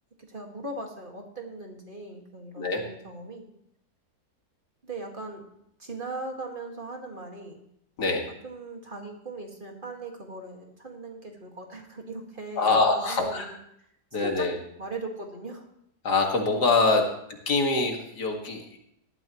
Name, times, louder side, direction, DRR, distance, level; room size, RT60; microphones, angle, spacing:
voice 1, 0.3-3.5 4.8-5.4 5.8-7.6 8.3-13.5 14.1-14.5 14.8-15.7 16.8-17.1, right 2 dB, 30° right, 1 dB, 2.0 m, -39 dB
voice 2, 12.6-13.5 14.1-14.6 16.0-17.0 17.5-18.8, left 3 dB, 80° left, 2 dB, 2.5 m, -24 dB
18.5 x 13.0 x 3.1 m, 0.74 s
omnidirectional pair, 1.7 m